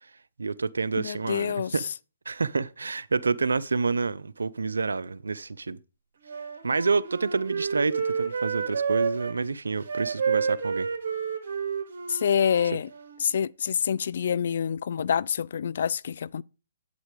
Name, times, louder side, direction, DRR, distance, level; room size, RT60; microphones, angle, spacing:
voice 1, 0.4-1.8 2.3-5.8 6.6-10.9, right 4 dB, 90° right, 0.6 m, -28 dB
voice 2, 0.9-1.9 12.1-12.9 13.2-16.4, left 8 dB, 65° left, 0.4 m, -27 dB
Wind instrument woodwind instrument, 6.2-9.4 9.8-13.3, right 5 dB, 65° right, 2.2 m, -30 dB
8.4 x 7.9 x 5.0 m
hypercardioid pair, 140°, 0 cm